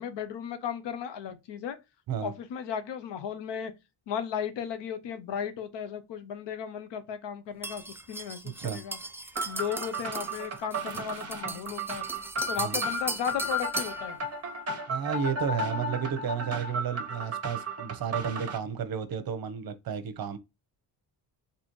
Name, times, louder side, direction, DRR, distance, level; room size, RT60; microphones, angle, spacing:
voice 1, 0.0-1.8 2.2-3.7 4.1-9.0 9.4-12.0 12.5-14.2, left 8 dB, 85° left, 0.7 m, -35 dB
sound 1, 7.6-14.1, right 2 dB, 5° right, 0.3 m, -38 dB
sound 2, 9.4-18.6, right 1 dB, 35° right, 1.0 m, -34 dB
voice 2, 14.9-20.4, right 7 dB, 55° right, 0.8 m, -32 dB
4.2 x 2.8 x 3.0 m
cardioid pair, 120°, 41 cm